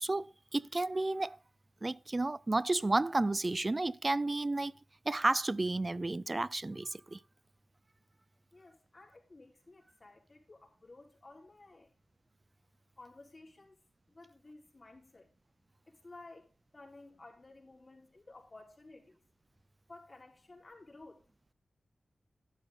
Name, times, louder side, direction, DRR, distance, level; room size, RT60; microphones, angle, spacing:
voice 1, 0.0-1.4 1.8-4.7 5.1-7.2, right 2 dB, 30° right, 0.4 m, -32 dB
voice 2, 8.5-11.9 13.0-13.8 14.1-15.3 15.9-19.2 19.9-21.3, left 2 dB, 35° left, 4.2 m, -55 dB
12.0 x 7.3 x 3.8 m
wide cardioid pair, 80°, 0 cm